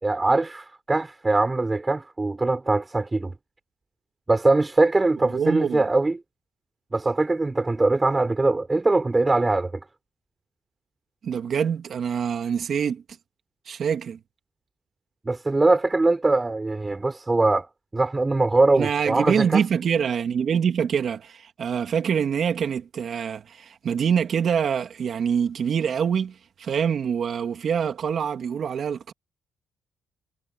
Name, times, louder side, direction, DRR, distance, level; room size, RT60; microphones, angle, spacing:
voice 1, 0.0-3.3 4.3-6.2 6.9-9.7 15.2-17.7 17.9-19.6, right 2 dB, 20° right, 5.7 m, -22 dB
voice 2, 5.3-5.9 11.2-13.0 13.7-14.2 18.7-29.1, right 7 dB, 55° right, 2.6 m, -25 dB
cardioid pair, 90°, 0 cm